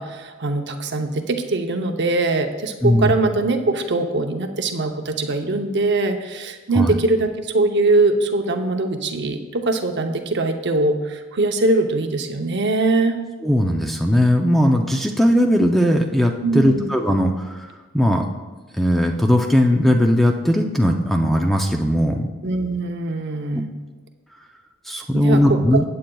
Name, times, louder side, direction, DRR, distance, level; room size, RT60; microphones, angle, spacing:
voice 1, 0.0-13.2 16.4-16.9 22.4-23.7 25.1-25.8, right 2 dB, 55° right, 5 dB, 0.7 m, -22 dB
voice 2, 2.8-3.1 6.7-7.0 13.4-18.2 18.7-22.3 24.9-25.8, equal, ahead, 2 dB, 0.5 m, -18 dB
15.5 x 8.6 x 2.3 m, 1.2 s
head